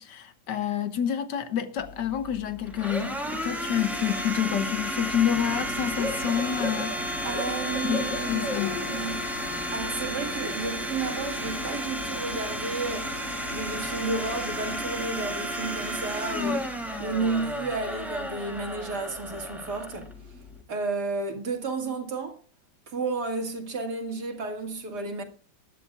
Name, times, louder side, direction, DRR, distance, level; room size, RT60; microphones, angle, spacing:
voice 1, 0.0-7.1 7.8-8.8 16.4-16.6, left 9 dB, 65° left, 1.6 m, -28 dB
Domestic sounds home sounds, 1.8-20.6, equal, ahead, 2.9 m, -33 dB
Bird / Cricket, 5.1-14.8, left 2 dB, 45° left, 2.0 m, -39 dB
voice 2, 7.2-8.5 8.9-9.2 9.7-13.2 13.5-16.7 17.0-20.1 20.7-22.4 22.9-25.2, right 3 dB, 55° right, 2.6 m, -32 dB
20.0 x 11.5 x 2.4 m
omnidirectional pair, 2.1 m